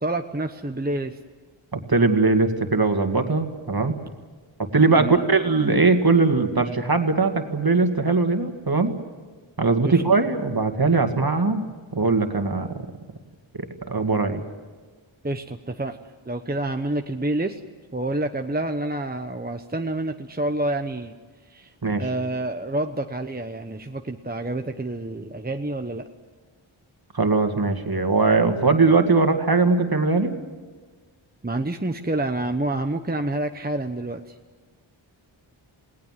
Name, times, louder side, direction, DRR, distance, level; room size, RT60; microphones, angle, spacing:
voice 1, 0.0-1.2 5.0-5.2 9.8-10.0 15.2-16.0 16.3-17.6 17.9-21.2 21.5-21.7 22.0-26.1 31.4-34.3, right 2 dB, 20° right, 6 dB, 1.0 m, -28 dB
voice 2, 1.7-4.0 4.6-9.0 9.6-11.6 11.9-12.8 13.5-14.4 21.8-22.1 27.1-30.4, right 3 dB, 45° right, 6 dB, 2.2 m, -20 dB
28.0 x 19.0 x 7.6 m, 1.4 s
wide cardioid pair, 55°, 49 cm